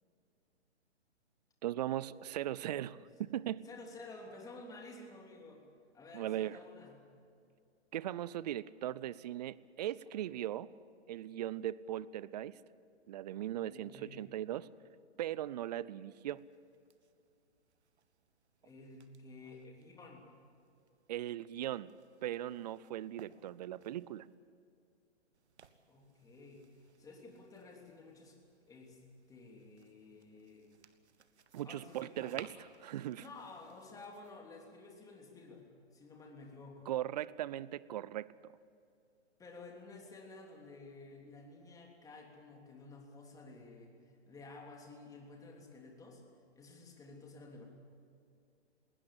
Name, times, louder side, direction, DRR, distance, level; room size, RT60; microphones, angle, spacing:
voice 1, 1.6-3.6 6.1-6.6 7.9-10.7 11.1-12.6 13.1-14.7 15.2-16.5 21.1-21.9 22.2-24.3 31.5-32.5 32.8-33.2 36.9-38.5, right 12 dB, 35° right, 20 dB, 0.6 m, -39 dB
voice 2, 3.6-5.6 5.9-6.9 13.6-14.3 18.6-20.2 25.9-28.4 28.7-29.0 29.3-30.7 31.6-32.3 33.2-36.9 39.4-46.2 46.5-47.7, left 3 dB, 10° left, 1 dB, 3.2 m, -52 dB
sound 1, 16.2-24.3 25.3-34.4, right 7 dB, 70° right, 1.5 m, -61 dB
20.0 x 19.5 x 8.6 m, 2.5 s
hypercardioid pair, 135°, 34 cm